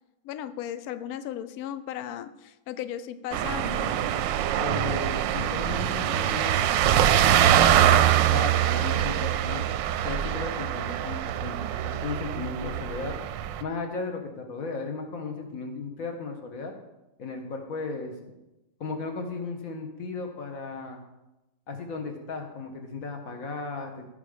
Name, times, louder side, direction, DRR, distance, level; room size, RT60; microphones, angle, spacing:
voice 1, 0.2-4.0, left 10 dB, 90° left, 12 dB, 0.8 m, -36 dB
sound 1, 3.3-13.6, right 11 dB, 75° right, 1.2 m, -24 dB
voice 2, 4.6-9.7 10.0-11.6 11.8-13.1 13.6-16.7 17.2-18.1 18.8-21.0 21.7-24.0, left 4 dB, 45° left, 4 dB, 1.7 m, -35 dB
15.5 x 5.7 x 5.1 m, 0.98 s
omnidirectional pair, 2.2 m